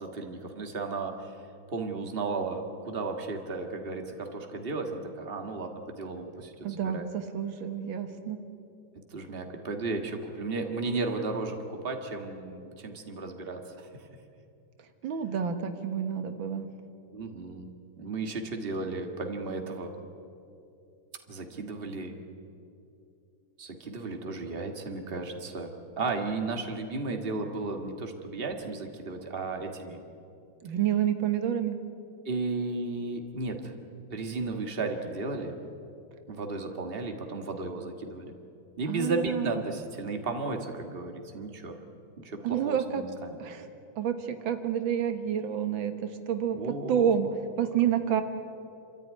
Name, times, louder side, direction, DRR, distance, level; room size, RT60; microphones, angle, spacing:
voice 1, 0.0-1.3 1.7-7.0 9.1-13.9 17.1-17.7 18.0-19.9 21.3-22.1 23.6-30.0 32.3-33.7 34.1-35.6 36.3-38.3 38.8-41.8 42.2-43.4 46.5-47.1, right 3 dB, 30° right, 4 dB, 1.9 m, -34 dB
voice 2, 6.6-8.4 15.0-16.7 30.6-31.9 38.9-39.6 42.4-43.0 43.4-43.7 44.0-46.6 46.9-48.2, right 8 dB, 85° right, 7 dB, 2.0 m, -29 dB
27.5 x 13.5 x 9.5 m, 2.7 s
omnidirectional pair, 2.1 m